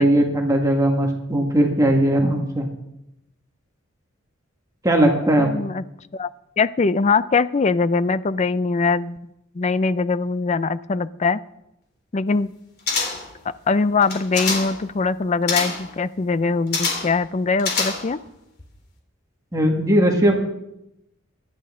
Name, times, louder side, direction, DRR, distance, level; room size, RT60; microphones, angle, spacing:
voice 1, 0.0-2.7 4.8-5.5 19.5-20.4, right 1 dB, 15° right, 2 dB, 1.7 m, -18 dB
voice 2, 5.4-5.8 6.1-6.3 6.6-9.2 9.5-11.4 12.1-12.5 13.7-18.2, left 4 dB, 35° left, 16 dB, 0.4 m, -22 dB
sound 1, 12.9-13.4 14.0-14.8 15.5-15.9 16.7-17.2 17.6-18.3 18.6-18.7, left 4 dB, 50° left, 3.2 m, -25 dB
24.0 x 11.0 x 3.7 m, 0.85 s
head